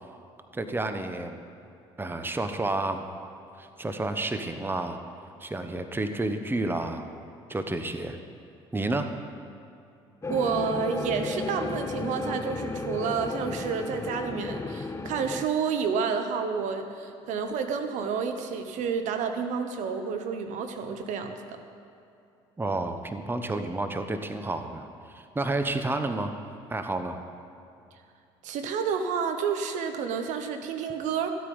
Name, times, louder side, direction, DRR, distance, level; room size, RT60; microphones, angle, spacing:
voice 1, 0.5-1.4 2.0-3.0 3.6-5.0 5.4-7.1 7.5-8.2 8.7-9.1 22.6-26.3 26.7-27.2, right 2 dB, 15° right, 7 dB, 1.0 m, -30 dB
sound 1, 10.2-15.5, left 3 dB, 20° left, 0.6 m, -34 dB
voice 2, 10.3-21.6 28.4-31.4, right 6 dB, 70° right, 7 dB, 1.0 m, -30 dB
14.0 x 8.5 x 5.4 m, 2.7 s
hypercardioid pair, 65°, 13 cm